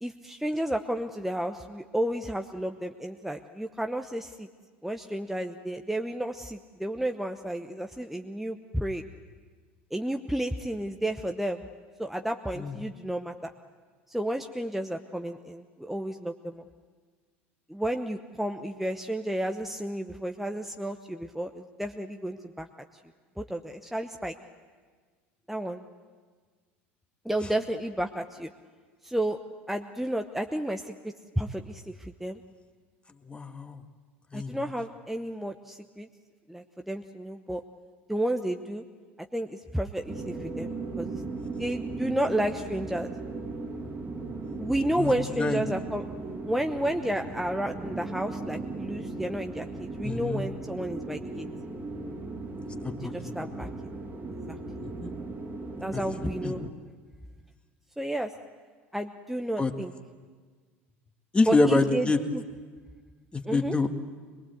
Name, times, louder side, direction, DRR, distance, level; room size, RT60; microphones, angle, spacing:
voice 1, 0.0-4.5 4.8-9.0 9.9-11.7 12.0-13.3 14.1-16.6 17.7-22.7 23.4-24.3 25.5-25.8 27.2-28.5 29.0-29.4 29.7-31.9 32.2-32.4 34.3-36.1 36.5-37.6 38.1-38.8 39.3-40.7 41.0-41.1 41.6-43.1 44.6-46.1 46.5-51.5 53.0-53.7 54.5-54.6 55.8-56.6 58.0-58.3 58.9-59.9 61.5-62.4 63.5-63.7, right 1 dB, 5° right, 5 dB, 0.9 m, -31 dB
voice 2, 33.2-33.8 34.3-34.7 45.0-45.6 50.0-50.5 52.7-53.3 55.0-55.1 55.9-56.1 56.4-56.6 59.6-59.7 61.3-62.2 63.3-63.9, left 3 dB, 15° left, 5 dB, 1.9 m, -27 dB
sound 1, 40.1-56.7, right 3 dB, 30° right, 2.6 m, -37 dB
23.0 x 22.0 x 8.1 m, 1.5 s
hypercardioid pair, 80°, 7 cm